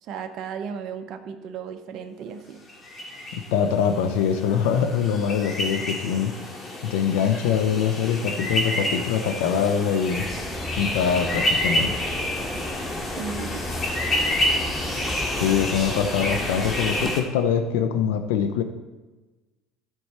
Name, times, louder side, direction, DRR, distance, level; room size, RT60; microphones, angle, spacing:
voice 1, 0.0-2.6 13.1-13.6, right 7 dB, 55° right, 5 dB, 0.8 m, -35 dB
sound 1, 2.7-17.2, left 1 dB, 30° left, 2.0 m, -29 dB
voice 2, 3.5-6.3 6.8-10.2 10.8-11.9 15.3-18.6, left 7 dB, 85° left, 7 dB, 0.7 m, -23 dB
sound 2, 10.1-17.1, equal, 5° right, 0.4 m, -35 dB
12.5 x 4.7 x 4.3 m, 1.2 s
supercardioid pair, 95°, 0 cm